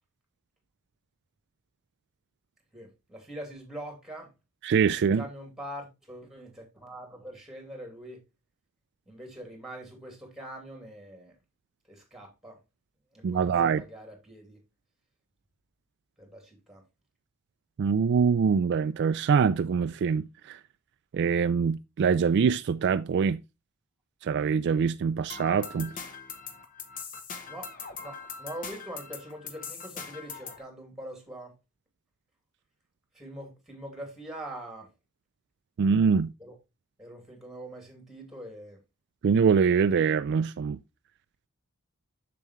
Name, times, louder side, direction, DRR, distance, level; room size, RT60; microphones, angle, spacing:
voice 1, 2.7-4.3 4.9-8.2 9.1-11.4 11.9-12.6 13.1-14.6 16.2-16.8 27.5-27.7 28.0-31.5 33.1-34.9 36.4-36.6 37.0-38.8, right 1 dB, ahead, 2.6 m, -43 dB
voice 2, 4.6-5.2 13.2-13.8 17.8-20.6 21.1-23.4 24.2-25.9 35.8-36.3 39.2-40.8, right 6 dB, 50° right, 0.3 m, -24 dB
sound 1, 25.3-30.6, left 5 dB, 40° left, 1.1 m, -41 dB
7.1 x 6.8 x 3.1 m
head